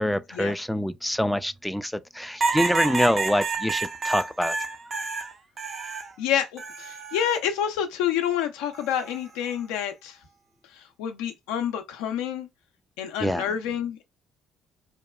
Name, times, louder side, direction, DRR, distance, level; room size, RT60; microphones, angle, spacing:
voice 1, 0.0-4.6 13.2-13.4, equal, 5° left, 0.3 m, -25 dB
sound 1, 2.4-6.1 6.6-7.4 8.7-9.2, right 4 dB, 45° right, 0.5 m, -29 dB
voice 2, 6.2-10.2 10.7-12.5 13.0-14.0, left 9 dB, 80° left, 0.5 m, -28 dB
2.8 x 2.2 x 2.2 m
hypercardioid pair, 55°, 0 cm